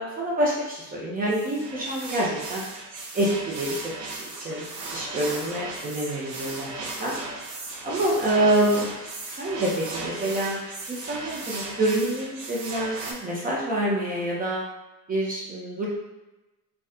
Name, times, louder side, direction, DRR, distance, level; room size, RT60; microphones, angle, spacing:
voice 1, 0.0-2.6 3.1-3.7 4.0-4.6 4.9-6.7 7.0-7.1 7.8-8.9 9.4-10.6 10.9-14.6 15.1-15.9, right 1 dB, 20° right, -5 dB, 0.4 m, -26 dB
sound 1, 1.3-13.1, right 2 dB, 60° right, 0.7 m, -36 dB
2.5 x 2.3 x 2.3 m, 1.0 s
hypercardioid pair, 85°, 48 cm